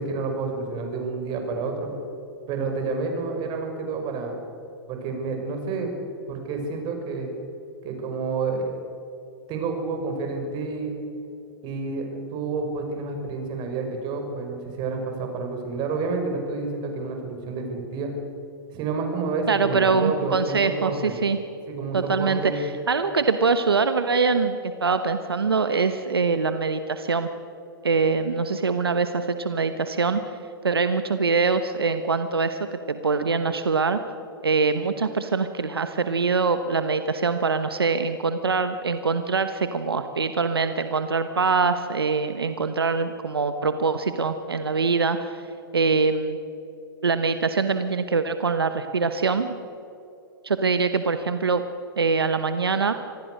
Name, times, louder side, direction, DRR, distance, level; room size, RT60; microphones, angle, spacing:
voice 1, 0.0-1.9 2.5-4.3 4.9-6.0 6.3-7.3 7.8-8.7 9.5-11.0 11.6-18.1 18.7-21.1 21.7-22.6, right 4 dB, 40° right, 3 dB, 6.1 m, -29 dB
voice 2, 19.5-21.4 21.9-27.3 27.8-30.2 30.6-34.0 34.4-45.5 45.7-46.4 47.0-49.5 50.4-51.6 52.0-52.9, right 4 dB, 85° right, 9 dB, 1.2 m, -23 dB
26.0 x 20.0 x 6.6 m, 2.8 s
hypercardioid pair, 110°, 12 cm